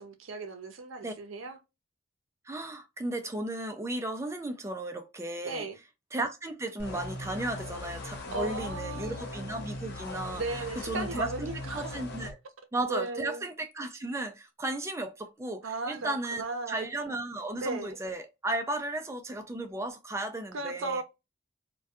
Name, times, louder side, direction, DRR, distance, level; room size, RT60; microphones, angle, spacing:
voice 1, 0.0-1.6 5.4-5.8 8.3-9.3 10.4-12.0 12.8-13.4 15.6-16.9 17.6-18.0 20.5-21.0, right 3 dB, 70° right, 0.6 m, -36 dB
voice 2, 2.5-5.7 6.1-10.4 10.8-12.4 12.7-21.0, right 2 dB, 15° right, 0.3 m, -35 dB
sound 1, 6.8-12.3, left 2 dB, 50° left, 0.7 m, -39 dB
2.6 x 2.2 x 2.3 m
head